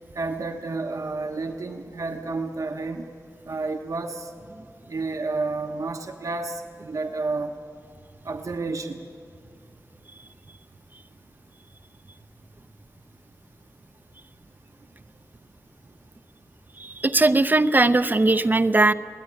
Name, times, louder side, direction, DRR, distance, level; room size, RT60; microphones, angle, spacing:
voice 1, 0.1-3.0 3.4-4.3 4.9-7.6 8.2-9.0, right 3 dB, 75° right, 4 dB, 1.2 m, -30 dB
voice 2, 16.8-18.9, right 2 dB, 35° right, 11 dB, 0.6 m, -19 dB
22.5 x 16.5 x 9.8 m, 2.2 s
wide cardioid pair, 90°, 6 cm